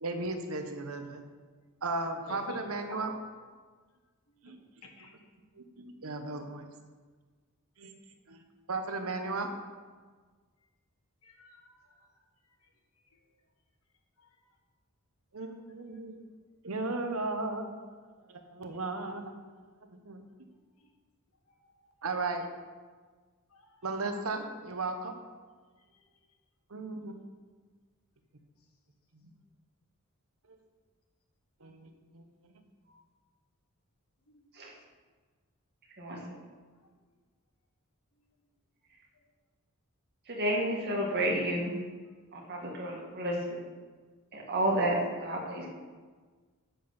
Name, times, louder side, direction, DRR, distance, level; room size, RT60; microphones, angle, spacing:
voice 1, 0.0-1.2 1.8-3.1 4.4-4.6 5.8-6.7 7.8-8.0 8.3-8.4 8.7-9.5 15.3-16.2 16.6-17.7 18.3-19.4 19.9-20.2 22.0-22.5 23.8-25.1 26.7-27.2 31.6-32.5, right 3 dB, 70° right, 5 dB, 1.1 m, -35 dB
voice 2, 2.3-3.2 4.4-4.5 4.8-5.2 11.2-12.1 20.8-20.9 21.6-21.9 23.5-23.8 34.3-34.4, left 2 dB, 70° left, 2 dB, 1.6 m, -50 dB
voice 3, 40.3-41.8 42.3-43.7 44.3-45.8, right 1 dB, 50° right, -2 dB, 1.9 m, -31 dB
8.8 x 7.4 x 5.6 m, 1.4 s
head